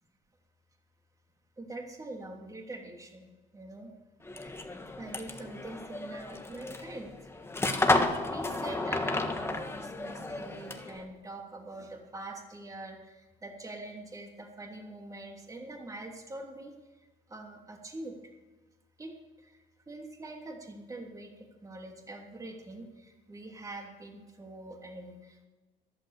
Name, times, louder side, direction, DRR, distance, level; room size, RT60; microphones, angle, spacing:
voice 1, 1.6-3.9 4.4-7.1 8.2-16.7 17.3-18.2 19.0-25.5, right 2 dB, 20° right, 2 dB, 3.0 m, -44 dB
sound 1, 4.2-11.0, left 2 dB, 15° left, 1.5 m, -32 dB
14.5 x 11.5 x 6.7 m, 1.2 s
cardioid pair, 110°, 17 cm